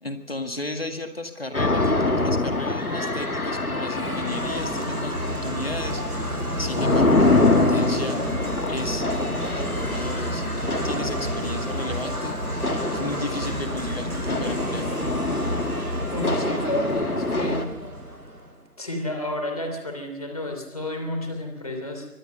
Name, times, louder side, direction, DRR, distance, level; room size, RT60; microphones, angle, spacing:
voice 1, 0.0-6.0 6.6-8.2 8.6-9.1 9.5-12.4 12.9-14.9, left 2 dB, 40° left, 7 dB, 2.0 m, -34 dB
sound 1, 1.5-17.6, left 2 dB, 65° left, 2.2 m, -25 dB
sound 2, 3.9-18.6, right 1 dB, 70° right, 6.6 m, -31 dB
voice 2, 16.1-17.6 18.8-22.1, left 1 dB, 25° left, 4 dB, 3.1 m, -30 dB
24.5 x 19.5 x 6.7 m, 1.1 s
figure-of-eight pair, 165°, 46 cm